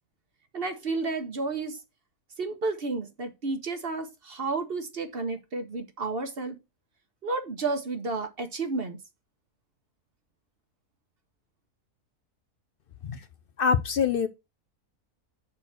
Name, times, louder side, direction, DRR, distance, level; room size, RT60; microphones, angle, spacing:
voice 1, 0.5-1.8 2.4-6.6 7.2-9.0, right 3 dB, 45° right, 1.1 m, -31 dB
voice 2, 13.6-14.3, left 6 dB, 80° left, 0.5 m, -25 dB
6.2 x 4.3 x 6.4 m
omnidirectional pair, 1.6 m